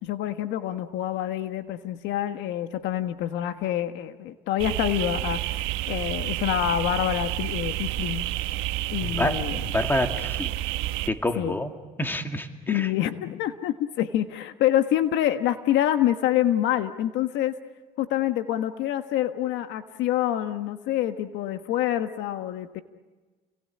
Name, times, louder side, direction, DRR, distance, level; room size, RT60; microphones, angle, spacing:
voice 1, 0.0-8.3 8.9-9.6 11.4-11.6 12.7-17.6 18.0-22.8, left 12 dB, 65° left, 9 dB, 1.4 m, -26 dB
sound 1, 4.6-11.1, right 15 dB, 75° right, 1.2 m, -30 dB
voice 2, 9.0-10.6 11.1-11.7 12.0-12.9, left 1 dB, 10° left, 6 dB, 2.2 m, -28 dB
30.0 x 21.5 x 8.6 m, 1.3 s
supercardioid pair, 100°, 20 cm